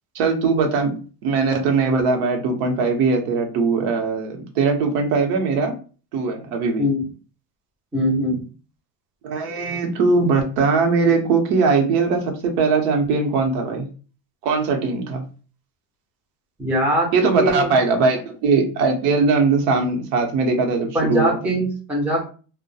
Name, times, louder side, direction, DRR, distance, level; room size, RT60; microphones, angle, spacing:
voice 1, 0.1-0.9 1.2-5.7 6.1-6.8 9.2-13.9 14.4-15.2 17.1-21.4, right 4 dB, 85° right, 4 dB, 0.8 m, -20 dB
voice 2, 7.9-8.4 16.6-17.7 20.9-22.3, equal, 5° right, -2 dB, 0.4 m, -22 dB
2.3 x 2.1 x 2.6 m, 0.37 s
cardioid pair, 145°, 46 cm